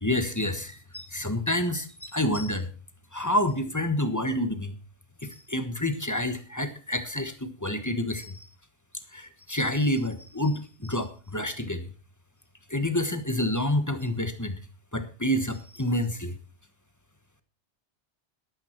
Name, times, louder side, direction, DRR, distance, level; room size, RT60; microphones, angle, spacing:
voice 1, 0.0-2.7 3.1-4.7 5.2-8.5 9.1-11.9 12.7-14.6 14.9-16.4, left 1 dB, 15° left, 8 dB, 1.3 m, -28 dB
13.0 x 12.0 x 4.5 m, 0.37 s
omnidirectional pair, 1.2 m